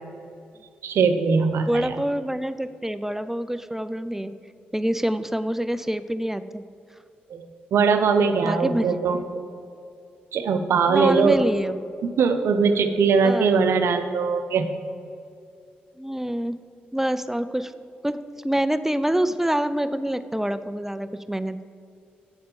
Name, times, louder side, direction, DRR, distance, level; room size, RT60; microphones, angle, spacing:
voice 1, 0.8-2.0 7.3-9.2 10.3-11.4 12.0-14.7, right 5 dB, 65° right, 7 dB, 0.6 m, -21 dB
voice 2, 1.7-4.3 4.7-6.6 8.2-9.0 10.9-11.8 13.2-13.5 16.0-16.6 16.9-17.7 18.0-21.6, right 1 dB, 10° right, 12 dB, 0.4 m, -26 dB
8.8 x 4.3 x 6.9 m, 2.4 s
hypercardioid pair, 40°, 5 cm